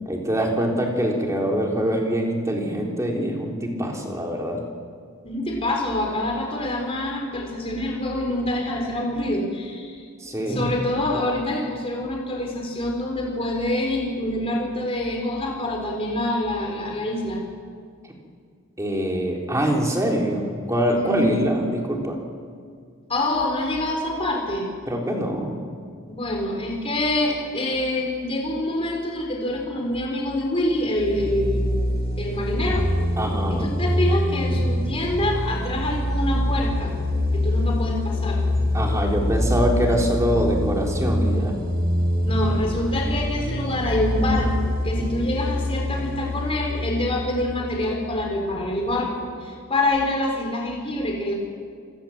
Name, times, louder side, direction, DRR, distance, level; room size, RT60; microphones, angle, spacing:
voice 1, 0.1-4.6 10.2-10.7 18.8-22.2 24.9-25.5 33.2-33.7 38.7-41.6, equal, 15° right, 0 dB, 3.7 m, -24 dB
voice 2, 5.2-10.0 10.5-17.4 21.0-21.4 23.1-24.7 26.1-31.7 32.2-32.9 33.5-36.9 37.3-38.4 42.2-51.3, left 1 dB, 25° left, 0 dB, 4.3 m, -26 dB
sound 1, 31.0-48.4, equal, 45° right, 4.7 m, -25 dB
27.5 x 22.5 x 7.4 m, 2.1 s
head